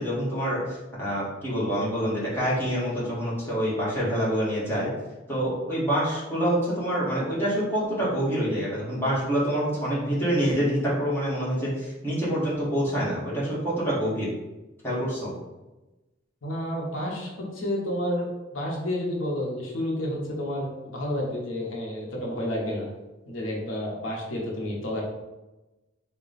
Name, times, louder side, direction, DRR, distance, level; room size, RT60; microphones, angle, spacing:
voice 1, 0.0-4.9 5.3-14.3 14.8-15.3, equal, 10° left, -8 dB, 1.3 m, -26 dB
voice 2, 16.4-22.9 23.3-25.0, left 1 dB, 80° left, -2 dB, 0.8 m, -30 dB
3.8 x 2.2 x 3.9 m, 1.1 s
head